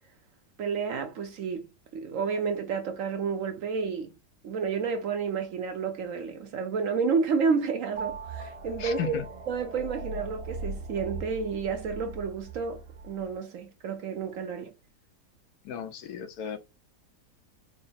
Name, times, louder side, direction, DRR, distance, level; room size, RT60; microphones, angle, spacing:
voice 1, 0.6-4.1 4.4-14.7, right 5 dB, 65° right, 0.9 m, -30 dB
sound 1, 7.9-13.3, right 3 dB, 90° right, 1.3 m, -40 dB
voice 2, 8.8-9.2 15.6-16.6, left 8 dB, 75° left, 1.2 m, -35 dB
3.9 x 2.1 x 3.9 m
omnidirectional pair, 1.7 m